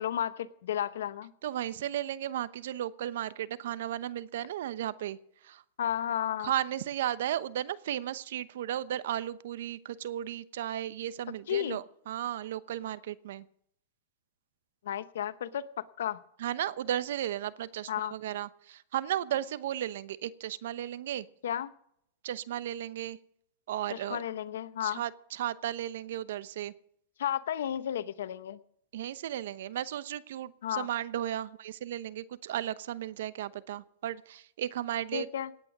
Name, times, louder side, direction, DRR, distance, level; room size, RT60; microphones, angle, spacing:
voice 1, 0.0-1.3 5.8-6.5 11.5-11.8 14.8-16.2 17.9-18.1 21.4-21.7 23.9-25.0 27.2-28.6 30.6-30.9 35.1-35.5, left 10 dB, 80° left, 15 dB, 0.9 m, -33 dB
voice 2, 1.4-5.2 5.4-5.6 6.4-13.4 16.4-21.3 22.2-23.2 23.7-24.2 24.8-26.7 28.9-35.3, right 11 dB, 75° right, 16 dB, 0.9 m, -35 dB
18.0 x 9.0 x 6.1 m, 0.70 s
hypercardioid pair, 120°, 0 cm